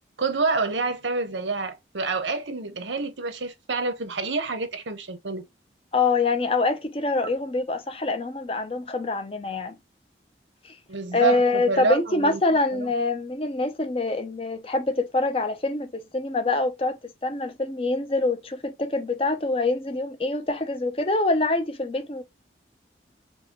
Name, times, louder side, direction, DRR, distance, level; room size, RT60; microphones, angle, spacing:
voice 1, 0.2-5.4 10.9-12.4 12.7-12.9, right 4 dB, 90° right, 0.9 m, -28 dB
voice 2, 5.9-9.8 11.1-22.2, left 3 dB, 30° left, 0.6 m, -25 dB
5.4 x 2.3 x 3.0 m
head